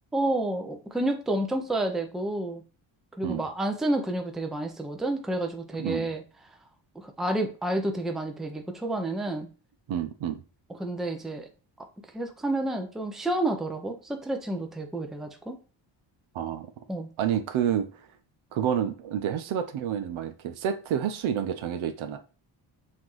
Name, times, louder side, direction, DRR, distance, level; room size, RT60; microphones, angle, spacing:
voice 1, 0.1-2.6 3.2-6.2 7.0-9.5 10.8-11.5 11.8-11.9 12.1-15.6 16.9-17.1, right 1 dB, ahead, 0.5 m, -30 dB
voice 2, 9.9-10.4 16.3-16.7 17.2-18.1 18.5-22.2, right 9 dB, 80° right, 0.7 m, -29 dB
5.7 x 2.6 x 3.1 m
cardioid pair, 105°, 48 cm